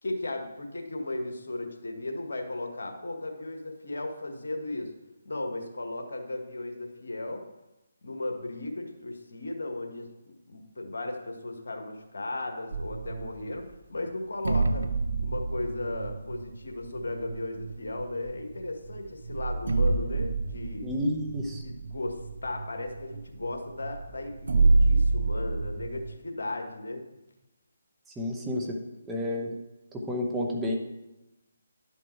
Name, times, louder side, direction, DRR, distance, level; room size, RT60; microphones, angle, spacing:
voice 1, 0.0-4.9 5.2-7.4 8.0-10.1 10.5-14.9 15.2-20.9 21.6-27.1, left 2 dB, 70° left, 4 dB, 1.5 m, -36 dB
sound 1, 12.7-13.6 14.5-18.4 18.9-19.0 19.3-26.2, right 3 dB, 65° right, 0.6 m, -28 dB
voice 2, 20.8-21.6 28.2-28.8 29.1-29.5 29.9-30.7, left 1 dB, 10° right, -1 dB, 1.0 m, -30 dB
11.0 x 5.5 x 4.5 m, 0.98 s
figure-of-eight pair, 150°, 0 cm